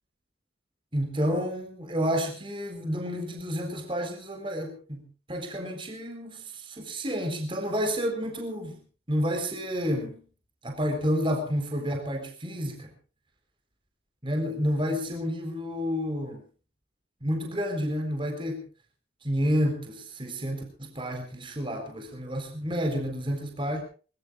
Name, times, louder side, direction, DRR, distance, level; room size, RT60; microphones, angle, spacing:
voice 1, 0.9-8.8 9.1-10.2 10.6-12.9 14.2-16.4 17.2-18.7 19.2-23.8, equal, 25° right, 4 dB, 4.1 m, -30 dB
23.5 x 22.0 x 2.5 m, 0.39 s
head